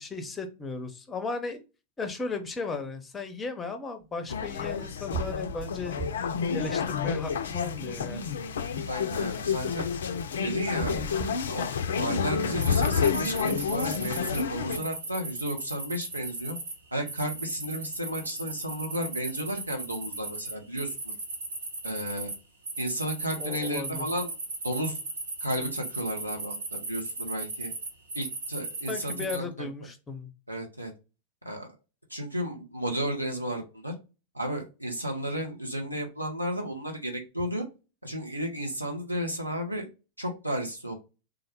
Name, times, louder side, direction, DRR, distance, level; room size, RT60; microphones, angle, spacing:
voice 1, 0.0-1.6 2.0-6.0 6.5-8.2 23.4-24.1 28.9-30.3, left 3 dB, 15° left, 7 dB, 0.6 m, -36 dB
sound 1, 4.3-14.8, left 6 dB, 65° left, 0.4 m, -29 dB
sound 2, 5.1-6.4 6.8-7.9 10.6-12.2, right 4 dB, 30° right, 0.7 m, -38 dB
voice 2, 8.9-9.9 10.4-11.1 11.5-11.7 11.9-16.6 16.9-21.0 21.8-22.3 22.8-24.3 24.6-25.0 25.4-27.7 28.1-29.7 30.5-30.9 31.4-31.7 32.1-33.9 34.3-37.6 38.0-39.9 40.2-40.9, equal, 85° right, 1 dB, 0.6 m, -33 dB
sound 3, 12.6-14.4 14.7-16.7 17.1-22.4 22.6-29.4, right 3 dB, 70° right, 0.9 m, -37 dB
3.4 x 2.1 x 3.4 m, 0.29 s
figure-of-eight pair, 90°, 0 cm